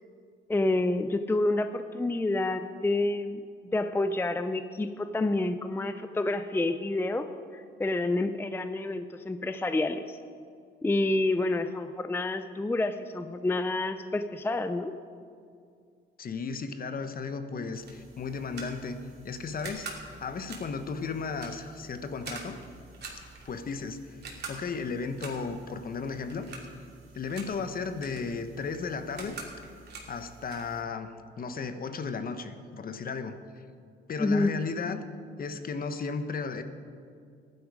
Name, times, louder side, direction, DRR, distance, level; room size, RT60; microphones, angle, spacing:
voice 1, 0.5-3.4 3.7-10.2 10.8-14.9 34.2-34.5, left 2 dB, 10° left, 10 dB, 0.5 m, -28 dB
voice 2, 16.2-19.0 19.2-22.6 23.4-24.2 24.5-26.5 27.1-29.4 30.1-31.1 31.4-33.4 34.1-35.0 35.4-36.6, left 5 dB, 45° left, 9 dB, 1.0 m, -34 dB
sound 1, 17.7-30.8, right 4 dB, 55° right, 2.8 m, -46 dB
15.0 x 11.0 x 4.9 m, 2.3 s
cardioid pair, 90°, 20 cm